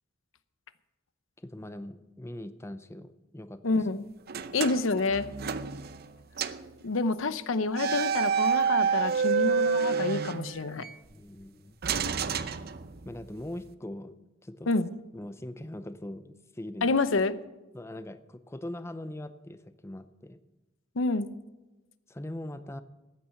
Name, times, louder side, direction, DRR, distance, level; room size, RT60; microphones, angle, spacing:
voice 1, 1.4-3.8 10.8-11.8 13.0-14.2 14.4-14.7 15.1-16.9 17.7-20.4 22.1-22.8, left 1 dB, 15° left, 11 dB, 0.6 m, -41 dB
voice 2, 3.6-4.0 4.5-5.3 6.8-10.8 14.7-14.9 16.8-17.3 21.0-21.3, left 3 dB, 85° left, 14 dB, 0.7 m, -28 dB
sound 1, 4.3-6.1 6.4-6.7 7.7-10.9 11.8-13.2, right 6 dB, 50° right, 0.7 m, -28 dB
14.5 x 9.6 x 5.8 m, 1.1 s
head